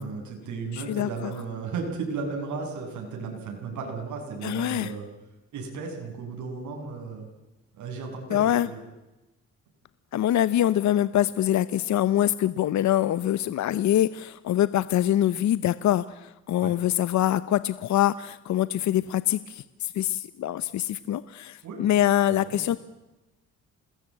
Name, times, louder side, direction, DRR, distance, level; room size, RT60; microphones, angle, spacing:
voice 1, 0.0-5.1 5.5-7.3 7.7-8.8 16.6-16.7 21.6-21.9 22.4-22.6, right 4 dB, 75° right, 1 dB, 7.2 m, -35 dB
voice 2, 0.7-1.1 4.4-4.9 8.3-8.7 10.1-22.8, left 12 dB, 70° left, 15 dB, 0.9 m, -24 dB
27.5 x 20.0 x 8.8 m, 1.0 s
cardioid pair, 90°, 30 cm